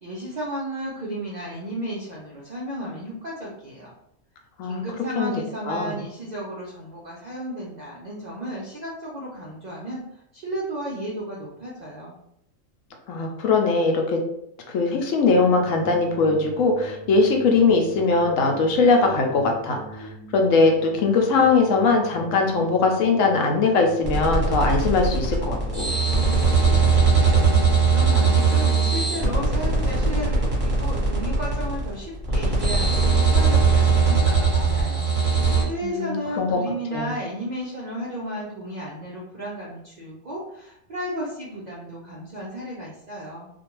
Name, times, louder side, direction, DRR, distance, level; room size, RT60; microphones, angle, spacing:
voice 1, 0.0-3.9 4.6-12.1 27.8-43.5, equal, 60° right, -5 dB, 0.4 m, -33 dB
voice 2, 13.1-14.2 14.7-25.9 35.8-36.6 36.9-37.1, left 4 dB, 75° left, 3 dB, 0.9 m, -21 dB
sound 1, 15.2-30.1, right 2 dB, 20° left, 0.7 m, -41 dB
sound 2, 24.0-35.6, right 4 dB, 30° right, 0.8 m, -20 dB
2.5 x 2.2 x 2.9 m, 0.77 s
omnidirectional pair, 1.4 m